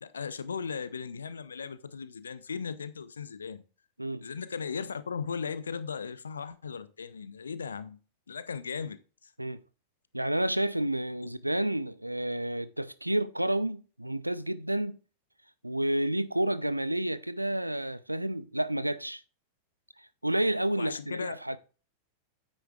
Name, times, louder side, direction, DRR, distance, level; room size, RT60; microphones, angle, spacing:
voice 1, 0.0-3.6 4.2-8.0 8.3-9.3 11.2-11.3 20.8-21.3, left 6 dB, 70° left, 0.6 m, -37 dB
voice 2, 10.1-15.0 15.6-19.2 20.2-21.6, right 1 dB, 85° right, 0.5 m, -30 dB
9.1 x 9.1 x 2.4 m
figure-of-eight pair, 90°, 0 cm